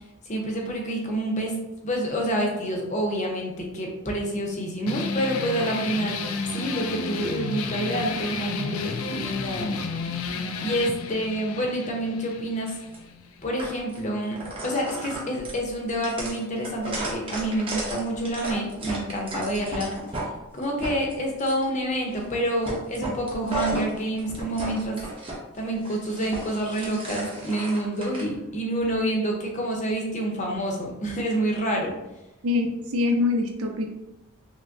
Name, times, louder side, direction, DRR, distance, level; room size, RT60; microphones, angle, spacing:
voice 1, 0.2-10.3 10.6-12.7 13.4-20.0 20.5-25.0 25.5-31.9, right 1 dB, 35° left, 0 dB, 0.7 m, -28 dB
sound 1, 4.9-13.9, left 4 dB, 80° left, 0.4 m, -32 dB
sound 2, 12.7-13.0 13.6-14.0 14.3-20.3 20.6-21.6 22.1-22.4 22.6-25.4 25.7-28.2, right 2 dB, 25° right, 0.8 m, -34 dB
voice 2, 32.4-33.8, left 3 dB, 85° right, 3 dB, 0.6 m, -24 dB
5.7 x 2.1 x 2.6 m, 0.93 s
head